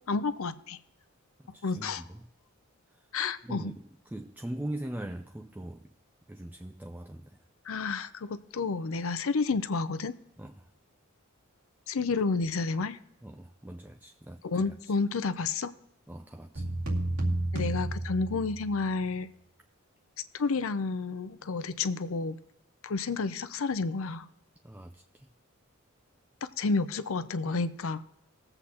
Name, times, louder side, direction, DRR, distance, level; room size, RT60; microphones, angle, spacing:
voice 1, 0.1-0.8 1.6-2.0 3.1-3.7 7.7-10.1 11.9-13.0 14.4-15.7 17.5-19.3 20.3-22.4 22.8-24.3 26.6-28.0, left 4 dB, 70° left, 13 dB, 0.6 m, -30 dB
voice 2, 1.4-2.2 3.0-3.1 3.4-5.9 6.3-7.4 10.4-10.7 13.2-14.9 16.1-16.7 24.6-25.3, right 1 dB, 10° right, 4 dB, 0.4 m, -41 dB
sound 1, 16.6-18.8, right 1 dB, 70° right, 2.3 m, -31 dB
20.5 x 7.8 x 2.9 m, 0.81 s
head